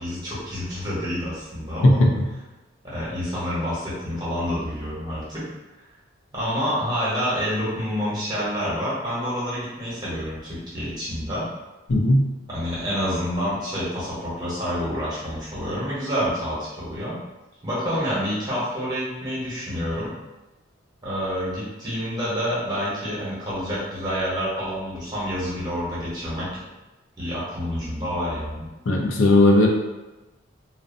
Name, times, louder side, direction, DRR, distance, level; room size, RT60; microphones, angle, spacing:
voice 1, 0.0-2.1 2.8-5.4 6.3-11.4 12.5-17.2 17.6-20.1 21.0-26.5 27.2-28.6, equal, 20° right, -9 dB, 0.9 m, -28 dB
voice 2, 11.9-12.2 28.9-29.7, left 1 dB, 70° left, 0 dB, 0.4 m, -16 dB
2.6 x 2.1 x 2.5 m, 1.1 s
head